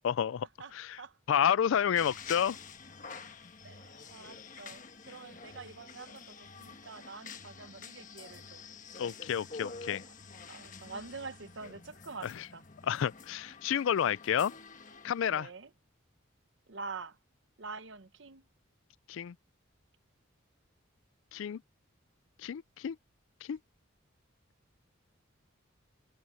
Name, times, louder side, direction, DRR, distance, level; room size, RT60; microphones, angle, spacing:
voice 1, 0.0-0.5 0.7-1.0 1.3-2.6 9.0-10.0 12.2-12.5 12.8-14.5 15.0-15.5 19.1-19.3 21.3-21.6 22.4-23.0 23.4-23.6, left 8 dB, 70° left, 0.3 m, -30 dB
voice 2, 0.6-1.2 3.6-8.6 10.0-10.1 10.5-12.6 15.3-15.7 16.7-17.2 17.6-18.4, right 4 dB, 60° right, 0.9 m, -46 dB
sound 1, 2.0-15.2, left 5 dB, 40° left, 1.3 m, -48 dB
head